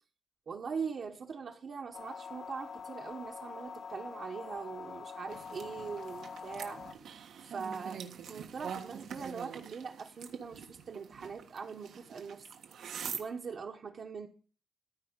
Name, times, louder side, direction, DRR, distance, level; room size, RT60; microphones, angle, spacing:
voice 1, 0.5-6.9 7.4-12.5 13.2-14.3, right 5 dB, 50° right, 1.1 m, -41 dB
sound 1, 1.9-6.9, left 5 dB, 60° left, 1.4 m, -45 dB
sound 2, 5.3-13.2, right 7 dB, 90° right, 1.4 m, -45 dB
14.0 x 4.8 x 8.1 m
wide cardioid pair, 140°, 0 cm